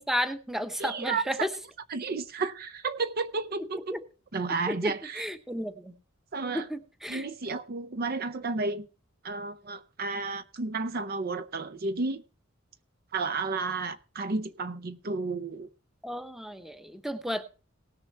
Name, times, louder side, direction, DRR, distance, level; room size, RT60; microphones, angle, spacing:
voice 1, 0.0-1.5 3.6-4.0 4.7-5.9 6.5-7.3 16.0-17.4, equal, ahead, 0.8 m, -33 dB
voice 2, 0.8-1.5 1.9-4.0 4.3-5.2 6.3-6.7 7.1-8.9 9.2-12.2 13.1-15.7, right 3 dB, 45° right, 0.6 m, -32 dB
17.5 x 6.8 x 4.4 m
head